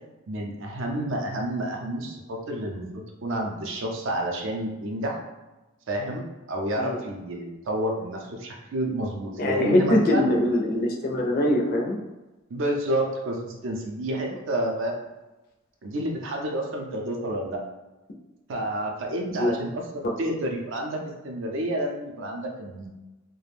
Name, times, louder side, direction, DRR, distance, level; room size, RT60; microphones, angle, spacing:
voice 1, 0.3-5.2 5.9-10.3 12.5-15.0 15.8-17.6 18.5-22.9, right 1 dB, 60° right, 1 dB, 0.4 m, -29 dB
voice 2, 9.4-12.0 19.4-19.5 20.0-20.1, left 1 dB, 45° left, 0 dB, 0.4 m, -23 dB
2.4 x 2.1 x 3.3 m, 1.1 s
head